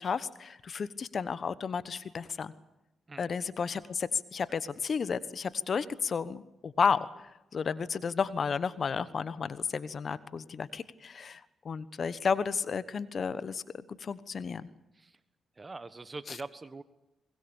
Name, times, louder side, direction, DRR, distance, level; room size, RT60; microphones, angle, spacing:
voice 1, 0.0-2.5 3.2-14.7 16.3-16.4, left 6 dB, 55° left, 16 dB, 1.2 m, -32 dB
voice 2, 15.6-16.8, right 3 dB, 35° right, 13 dB, 1.3 m, -43 dB
23.5 x 20.5 x 7.2 m, 0.92 s
supercardioid pair, 55°, 0 cm